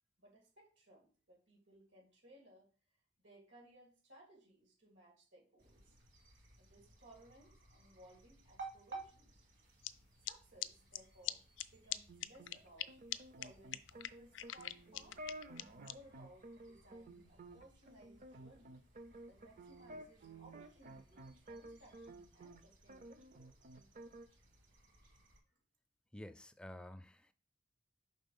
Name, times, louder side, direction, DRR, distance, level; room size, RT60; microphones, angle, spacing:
voice 1, 0.2-2.7 3.2-6.0 6.6-9.5 10.3-11.4 11.7-13.0 13.4-15.2 15.7-18.8 19.3-23.5, right 1 dB, 90° right, 2.4 m, -62 dB
sound 1, 5.6-25.4, right 3 dB, 70° right, 1.8 m, -59 dB
sound 2, 9.8-9.9 10.3-10.4 10.6-10.7 10.9-11.0 11.2-11.3 11.6-11.7 11.9-12.0 12.2-12.9 13.1-13.2 13.4-13.5 13.7-15.9, left 14 dB, 75° left, 0.4 m, -40 dB
sound 3, 12.1-22.6 22.9-24.3, right 1 dB, 45° right, 0.5 m, -53 dB
voice 2, 26.1-27.3, left 1 dB, 5° left, 0.4 m, -51 dB
5.3 x 3.7 x 5.3 m
head